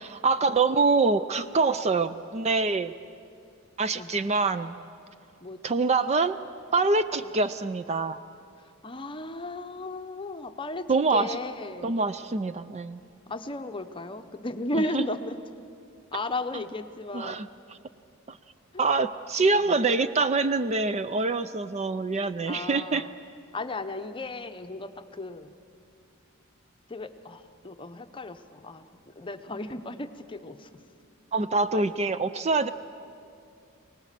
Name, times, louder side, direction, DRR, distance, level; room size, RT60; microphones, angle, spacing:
voice 1, 0.2-2.9 3.8-4.8 5.6-6.4 6.7-8.2 10.9-11.4 11.8-13.0 14.7-15.0 16.5-16.6 17.1-17.5 18.3-18.4 18.8-23.1 31.3-32.7, right 3 dB, 30° right, 12 dB, 0.4 m, -25 dB
voice 2, 5.4-5.8 7.2-7.3 8.8-12.0 13.3-15.3 16.1-17.4 19.5-19.8 22.5-23.1 23.5-25.5 26.9-30.7 31.7-31.9, left 2 dB, 25° left, 8 dB, 0.8 m, -35 dB
25.0 x 18.5 x 7.5 m, 2.5 s
head